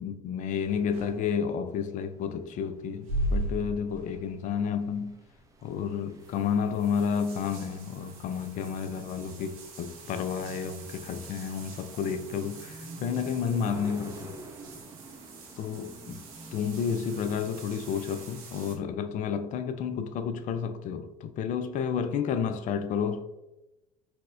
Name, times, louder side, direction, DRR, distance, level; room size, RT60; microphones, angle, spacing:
voice 1, 0.0-5.2 5.6-14.4 15.6-16.2 16.5-23.3, left 7 dB, 45° left, 0.4 m, -31 dB
sound 1, 0.6-1.6 2.9-4.6 4.9-5.0 5.4-18.8, right 1 dB, 85° right, 0.7 m, -40 dB
sound 2, 1.8-17.6, right 2 dB, 20° right, 0.5 m, -49 dB
4.1 x 2.2 x 2.5 m
hypercardioid pair, 75°, 18 cm